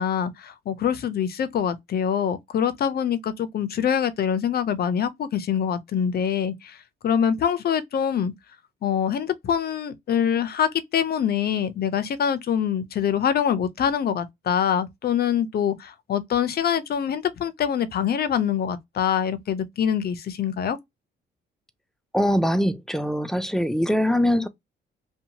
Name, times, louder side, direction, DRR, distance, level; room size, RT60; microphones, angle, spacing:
voice 1, 0.0-6.8 7.0-8.3 8.8-20.8, left 8 dB, 50° left, 0.6 m, -24 dB
voice 2, 22.1-24.5, equal, ahead, 0.4 m, -22 dB
2.7 x 2.2 x 2.8 m
cardioid pair, 90°, 20 cm